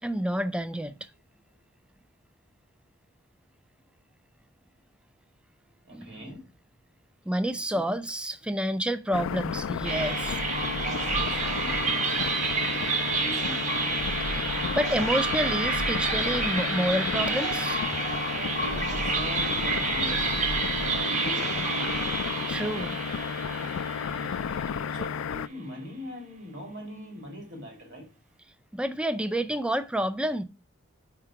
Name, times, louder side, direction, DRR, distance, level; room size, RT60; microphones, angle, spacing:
voice 1, 0.0-1.0 5.9-6.3 7.3-10.4 14.3-17.8 22.5-23.0 28.7-30.4, equal, 5° right, 0.3 m, -29 dB
voice 2, 5.8-6.5 7.7-7.9 10.7-12.0 12.7-13.8 18.3-20.3 20.8-21.8 24.0-28.1, equal, 55° right, 2.6 m, -42 dB
sound 1, 9.1-25.5, left 6 dB, 90° left, 0.3 m, -33 dB
sound 2, 9.7-21.0, equal, 90° right, 1.1 m, -40 dB
sound 3, 9.8-25.1, right 4 dB, 35° right, 1.0 m, -29 dB
4.9 x 4.5 x 4.8 m
head